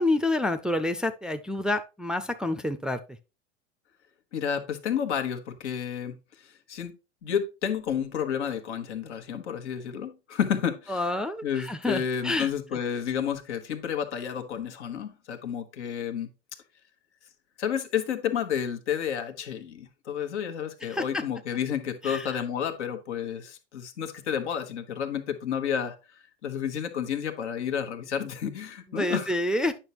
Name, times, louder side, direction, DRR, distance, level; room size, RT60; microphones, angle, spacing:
voice 1, 0.0-3.0 10.9-12.5 20.9-21.2 22.0-22.3 28.9-29.7, left 2 dB, ahead, 0.4 m, -28 dB
voice 2, 4.3-6.2 6.4-6.9 7.2-11.1 11.4-16.3 17.6-25.9 26.4-29.3, left 8 dB, 85° left, 1.3 m, -31 dB
9.0 x 5.8 x 3.0 m
hypercardioid pair, 110°, 34 cm